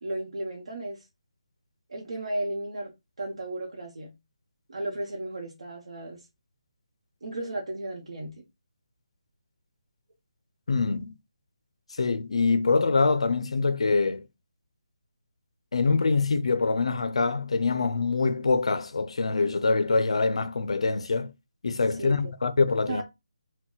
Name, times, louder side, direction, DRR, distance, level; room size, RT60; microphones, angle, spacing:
voice 1, 0.0-1.0 1.9-2.9 3.2-4.1 4.7-6.2 7.2-8.3 22.0-22.2 22.9-23.0, right 1 dB, 75° right, 0.8 m, -34 dB
voice 2, 10.7-11.1 12.0-14.3 15.7-21.3 21.6-23.0, left 4 dB, 80° left, 0.3 m, -24 dB
2.3 x 2.1 x 3.7 m
hypercardioid pair, 165°, 3 cm